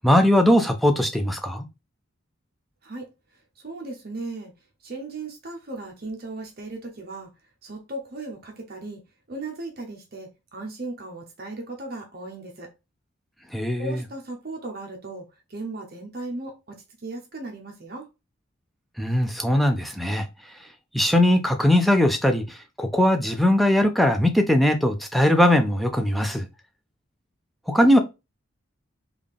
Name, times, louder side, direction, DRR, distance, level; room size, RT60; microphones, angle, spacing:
voice 1, 0.0-1.7 13.5-14.0 19.0-20.3 20.9-26.5 27.7-28.0, left 1 dB, ahead, 0.4 m, -20 dB
voice 2, 3.6-4.5 4.8-7.3 7.6-9.0 9.3-12.7 13.8-18.1, right 2 dB, 45° right, 0.7 m, -36 dB
3.7 x 2.4 x 3.4 m
head